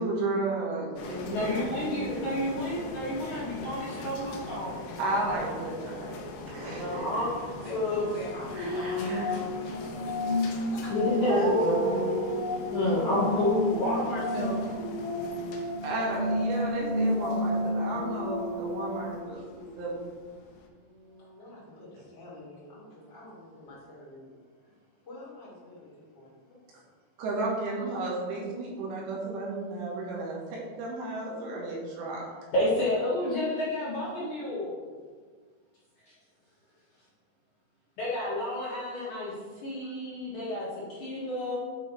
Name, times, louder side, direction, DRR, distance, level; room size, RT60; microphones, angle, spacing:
voice 1, 0.0-2.2 5.0-6.3 6.5-7.0 8.5-9.3 11.3-12.4 12.7-12.8 15.8-20.1 27.2-32.2, right 2 dB, 90° right, -4 dB, 3.9 m, -33 dB
sound 1, 1.0-20.7, left 2 dB, 80° left, 2.8 m, -43 dB
voice 2, 1.2-4.9 6.6-8.1 9.0-9.2 10.5-11.8 12.1-14.6 32.5-34.7 38.0-39.3 39.6-41.6, left 1 dB, 55° left, -9 dB, 2.7 m, -30 dB
voice 3, 7.6-10.9 20.7-24.4 25.0-26.3, left 2 dB, 25° left, -6 dB, 1.9 m, -45 dB
sound 2, 8.5-19.2, left 1 dB, 40° left, 0.9 m, -31 dB
8.5 x 5.7 x 4.2 m, 1.5 s
omnidirectional pair, 4.9 m